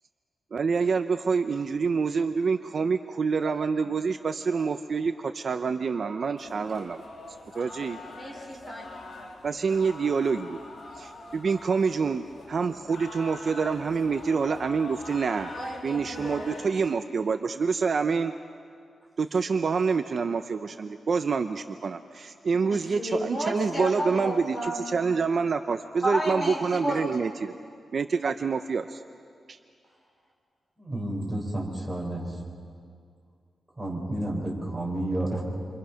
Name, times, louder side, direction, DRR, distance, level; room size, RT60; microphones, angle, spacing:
voice 1, 0.5-7.0 7.5-8.0 9.4-10.6 10.9-15.5 15.8-18.3 19.2-27.6 27.9-29.0 29.5-29.6, right 5 dB, 45° right, 8 dB, 0.6 m, -27 dB
sound 1, 6.4-16.7, left 2 dB, 65° left, 3.3 m, -44 dB
voice 2, 8.1-8.9 15.5-16.4 22.6-24.8 26.0-27.0, equal, 15° left, -2 dB, 5.1 m, -32 dB
voice 3, 30.8-32.4 33.8-35.4, right 1 dB, 10° right, -2 dB, 5.1 m, -31 dB
28.5 x 25.0 x 5.7 m, 2.3 s
wide cardioid pair, 150°, 0 cm